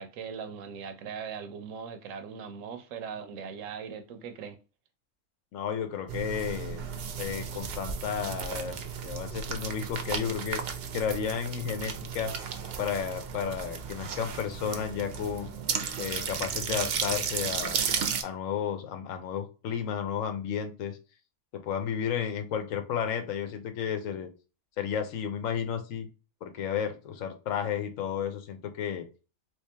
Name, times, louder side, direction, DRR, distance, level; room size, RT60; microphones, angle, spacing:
voice 1, 0.0-4.6, right 6 dB, 80° right, 1.0 m, -40 dB
voice 2, 5.5-6.8 7.2-10.6 10.9-12.3 12.8-15.5 16.0-17.8 18.2-21.0 21.5-24.3 24.8-26.1 26.4-29.1, left 8 dB, 85° left, 1.1 m, -32 dB
sound 1, 6.1-18.2, right 7 dB, 60° right, 0.7 m, -34 dB
3.3 x 2.9 x 3.2 m
omnidirectional pair, 1.3 m